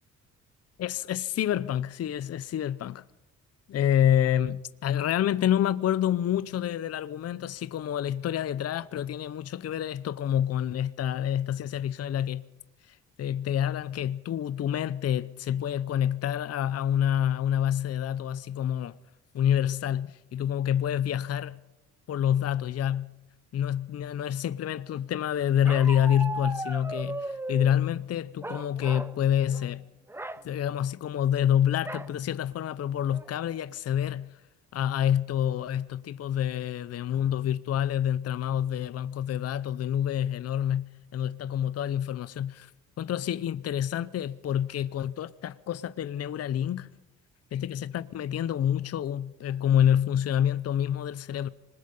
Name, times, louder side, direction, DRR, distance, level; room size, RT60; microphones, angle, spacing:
voice 1, 0.8-3.0 3.7-12.4 12.9-19.0 19.3-21.6 22.1-23.1 23.5-29.8 30.4-34.3 34.7-40.8 41.1-42.7 43.0-46.9 47.5-51.5, left 10 dB, 55° left, 0.7 m, -27 dB
Bark, 25.7-27.8 28.4-29.2 29.5-29.7 30.1-30.4 31.9-32.1 32.7-32.8 33.1-33.5, right 2 dB, 10° right, 0.8 m, -36 dB
26.0 x 20.5 x 5.4 m
cardioid pair, 90°, 30 cm